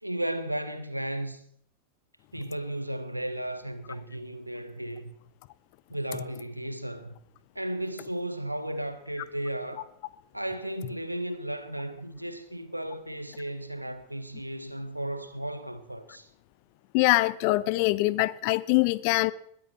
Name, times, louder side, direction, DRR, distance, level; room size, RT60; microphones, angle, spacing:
voice 1, 0.0-1.4 2.3-5.1 5.9-7.2 7.5-9.9 10.3-16.3, right 1 dB, 85° right, 1.5 m, -34 dB
voice 2, 16.9-19.3, left 21 dB, 45° left, 0.7 m, -23 dB
21.0 x 14.0 x 4.6 m
figure-of-eight pair, 90°, 0 cm